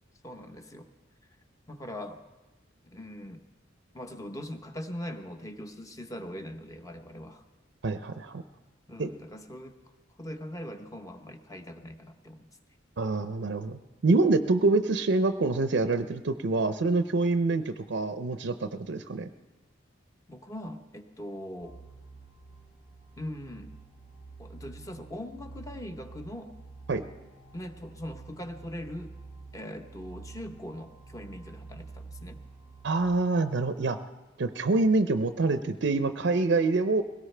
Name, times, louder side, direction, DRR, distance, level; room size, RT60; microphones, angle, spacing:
voice 1, 0.2-0.9 1.7-2.2 2.8-3.4 3.9-7.4 8.9-9.8 10.2-12.5 20.3-21.8 23.2-23.7 24.4-26.5 27.5-29.1 29.5-32.4, left 1 dB, 15° left, 6 dB, 0.9 m, -41 dB
voice 2, 7.8-8.4 9.0-9.1 13.0-19.3 26.9-27.0 32.8-34.0 34.4-37.0, right 3 dB, 65° right, 9 dB, 0.5 m, -26 dB
sound 1, 21.6-33.1, right 4 dB, 60° left, 4.3 m, -48 dB
21.5 x 17.5 x 3.3 m, 1.2 s
head